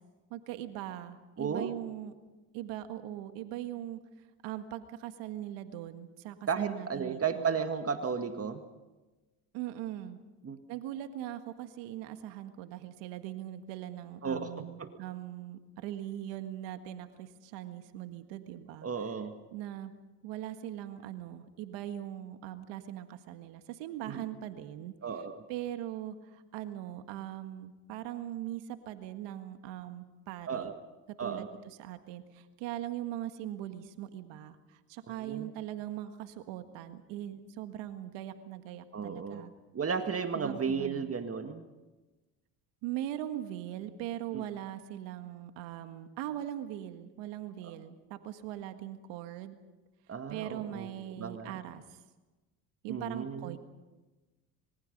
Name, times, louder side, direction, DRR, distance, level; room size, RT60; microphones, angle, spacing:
voice 1, 0.3-2.1 2.5-4.0 4.4-7.6 9.5-10.2 10.7-18.9 19.5-19.9 20.2-24.9 25.5-30.7 31.2-31.5 31.8-39.5 40.3-41.1 42.8-49.6 50.3-52.0 52.8-53.6, right 12 dB, 75° right, 9 dB, 1.8 m, -40 dB
voice 2, 1.4-1.8 6.5-8.6 10.4-10.6 14.2-14.9 18.8-19.3 24.1-24.2 25.0-25.4 30.5-30.8 31.2-31.5 35.2-35.5 38.9-39.4 39.7-41.7 44.3-44.4 47.6-47.8 50.1-50.9 51.2-51.6 52.9-53.6, right 6 dB, 30° right, 7 dB, 1.9 m, -34 dB
26.0 x 23.0 x 5.4 m, 1.1 s
supercardioid pair, 80°, 44 cm